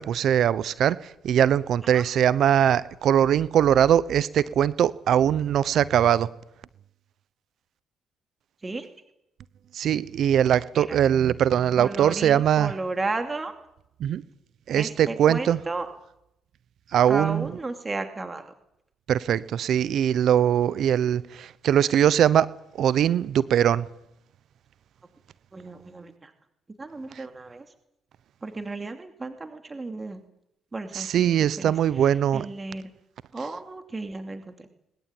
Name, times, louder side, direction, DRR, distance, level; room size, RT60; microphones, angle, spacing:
voice 1, 0.0-6.3 9.7-12.7 14.0-14.2 14.7-15.6 16.9-17.5 19.1-22.5 22.8-23.9 30.9-32.5, right 10 dB, 65° right, 19 dB, 0.9 m, -21 dB
voice 2, 11.8-13.5 14.7-15.9 17.1-18.4 25.5-26.3 26.8-27.6 28.4-30.2 30.7-31.7 32.3-32.9 33.3-34.7, right 3 dB, 25° right, 7 dB, 2.8 m, -33 dB
21.0 x 20.5 x 9.0 m, 0.80 s
supercardioid pair, 65°, 0 cm